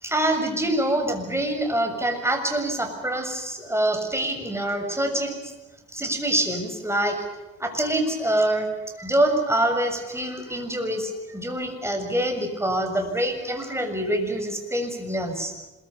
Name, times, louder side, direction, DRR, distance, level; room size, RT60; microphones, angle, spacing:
voice 1, 0.0-5.5 5.9-7.2 7.6-8.7 9.0-15.5, right 1 dB, 10° right, 5 dB, 7.0 m, -25 dB
26.5 x 23.0 x 7.1 m, 1.1 s
cardioid pair, 90°, 30 cm